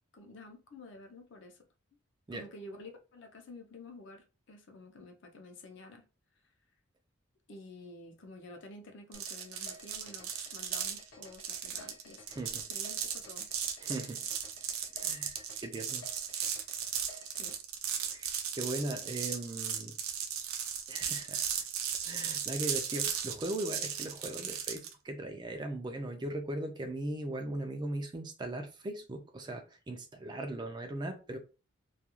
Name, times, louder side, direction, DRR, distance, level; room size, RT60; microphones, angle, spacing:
voice 1, 0.0-1.6 2.3-6.0 7.5-12.3 12.7-13.5 17.3-17.5, left 2 dB, 60° left, 0.6 m, -50 dB
sound 1, 9.1-17.6, left 2 dB, 85° left, 0.9 m, -53 dB
sound 2, 9.1-24.9, right 8 dB, 85° right, 0.5 m, -36 dB
voice 2, 12.3-12.6 13.8-14.3 15.0-16.1 18.0-20.0 20.9-21.4 22.0-31.4, right 1 dB, 20° right, 0.3 m, -39 dB
2.3 x 2.3 x 2.9 m
head